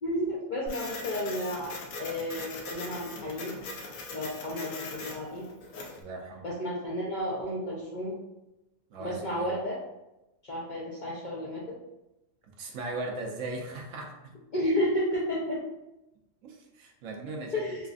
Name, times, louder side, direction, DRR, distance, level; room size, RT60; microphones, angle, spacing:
voice 1, 0.0-1.7 2.0-3.5 4.1-5.5 6.4-8.1 9.0-9.8 10.4-11.6 14.5-15.6 17.5-17.8, equal, 60° left, -5 dB, 0.5 m, -32 dB
Printer, 0.7-6.0, left 3 dB, 85° left, 1.0 m, -41 dB
voice 2, 6.0-6.5 8.9-9.5 12.4-14.3 16.4-17.6, right 2 dB, 75° right, 1 dB, 1.0 m, -38 dB
3.4 x 2.3 x 2.4 m, 0.94 s
omnidirectional pair, 1.4 m